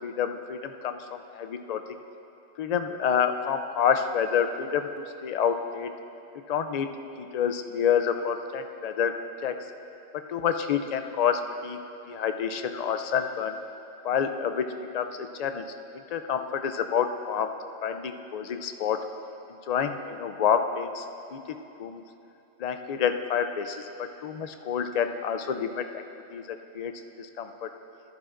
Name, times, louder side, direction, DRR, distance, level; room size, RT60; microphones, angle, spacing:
voice 1, 0.0-1.8 2.6-4.9 5.2-5.9 6.5-6.9 7.2-9.1 9.4-9.5 10.3-11.8 12.1-13.6 14.0-14.7 14.9-15.6 16.1-17.5 17.8-19.0 19.7-21.0 21.3-21.4 21.8-22.0 22.6-26.0 26.3-26.4 26.8-26.9 27.2-27.7, left 7 dB, 70° left, 7 dB, 0.3 m, -28 dB
14.5 x 11.0 x 2.5 m, 2.9 s
omnidirectional pair, 1.2 m